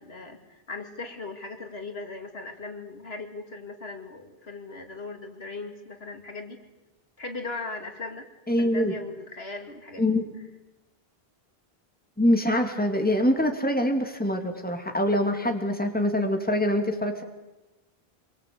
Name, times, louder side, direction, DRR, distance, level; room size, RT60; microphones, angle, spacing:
voice 1, 0.0-6.6 7.2-8.3 8.6-10.0, left 3 dB, 80° left, 4 dB, 2.7 m, -38 dB
voice 2, 8.5-8.9 10.0-10.2 12.2-17.2, left 1 dB, 10° left, 4 dB, 2.4 m, -24 dB
25.5 x 22.5 x 8.4 m, 1.1 s
omnidirectional pair, 1.0 m